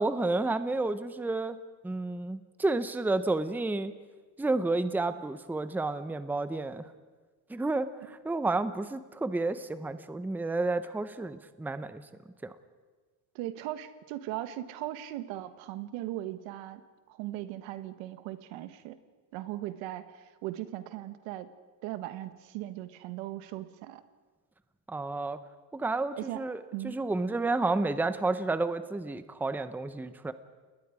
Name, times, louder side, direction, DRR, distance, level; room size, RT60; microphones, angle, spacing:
voice 1, 0.0-1.6 1.8-3.9 4.4-6.8 7.5-12.0 12.4-12.5 24.9-25.4 25.7-30.3, right 2 dB, 5° right, 12 dB, 0.7 m, -31 dB
voice 2, 13.3-16.8 17.1-19.0 19.3-21.5 21.8-24.0 26.2-26.4 26.7-27.0, right 14 dB, 85° right, 12 dB, 1.5 m, -38 dB
29.5 x 20.5 x 5.0 m, 1.3 s
cardioid pair, 130°, 45 cm